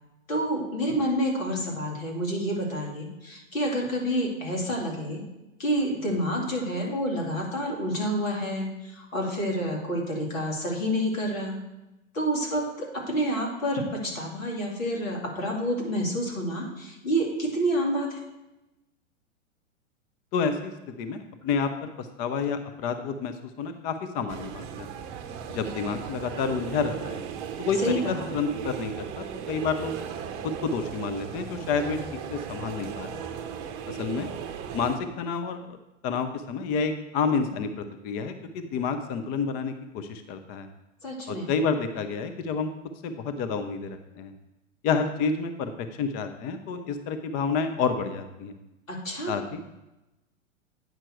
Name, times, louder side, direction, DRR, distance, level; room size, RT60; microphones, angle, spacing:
voice 1, 0.3-5.2 5.6-11.6 12.1-18.2 27.7-28.3 41.0-41.5 48.9-49.4, equal, 80° left, -1 dB, 2.8 m, -28 dB
voice 2, 20.3-24.9 25.5-27.2 27.6-27.9 28.3-29.9 30.4-32.0 32.3-33.2 33.9-34.3 34.7-35.8 36.0-40.7 41.3-42.7 43.0-44.3 44.8-45.7 46.0-48.5 49.3-49.6, left 5 dB, 25° left, 9 dB, 0.5 m, -29 dB
sound 1, 24.3-35.0, right 8 dB, 35° right, 0.8 m, -37 dB
9.2 x 5.9 x 4.5 m, 0.98 s
hypercardioid pair, 110°, 39 cm